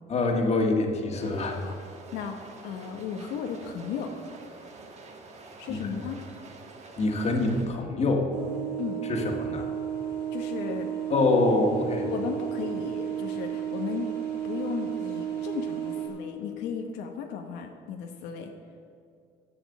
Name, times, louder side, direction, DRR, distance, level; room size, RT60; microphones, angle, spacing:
voice 1, 0.1-1.6 5.7-5.9 7.0-8.3 9.1-9.7 11.1-12.1, left 2 dB, 40° left, 2 dB, 1.7 m, -25 dB
sound 1, 1.2-7.7, right 3 dB, 40° right, 1.5 m, -47 dB
voice 2, 2.1-4.1 5.6-6.2 8.8-9.1 10.3-10.9 12.0-14.1 14.4-18.5, left 6 dB, 85° left, 3 dB, 1.0 m, -35 dB
sound 2, 8.3-16.1, right 10 dB, 75° right, 2.7 m, -33 dB
11.5 x 6.9 x 7.1 m, 2.3 s
cardioid pair, 110°, 17 cm